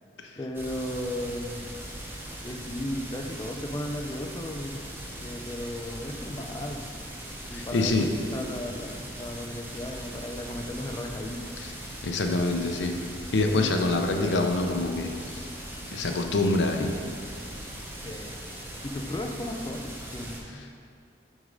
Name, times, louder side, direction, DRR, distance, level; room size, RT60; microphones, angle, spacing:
voice 1, 0.4-1.7 2.4-4.9 5.2-6.9 7.5-11.4 18.0-18.4 18.8-20.6, left 1 dB, 20° left, 4 dB, 0.4 m, -35 dB
sound 1, 0.5-20.4, right 1 dB, 10° right, 0.8 m, -40 dB
voice 2, 7.5-8.1 11.6-11.7 12.0-13.0 13.3-15.5 15.9-17.0, left 2 dB, 80° left, 4 dB, 0.6 m, -26 dB
6.3 x 3.7 x 5.2 m, 2.3 s
head